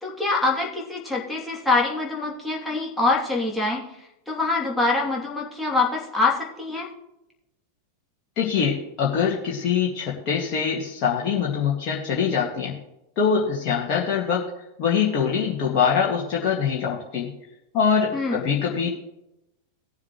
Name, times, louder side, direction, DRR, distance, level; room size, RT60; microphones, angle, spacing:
voice 1, 0.0-6.9 18.1-18.4, left 3 dB, 5° left, -4 dB, 2.8 m, -25 dB
voice 2, 8.4-12.7 13.2-14.5 14.8-17.3 17.7-18.9, left 7 dB, 40° left, -4 dB, 2.0 m, -23 dB
18.5 x 7.2 x 3.1 m, 0.89 s
figure-of-eight pair, 90°, 0 cm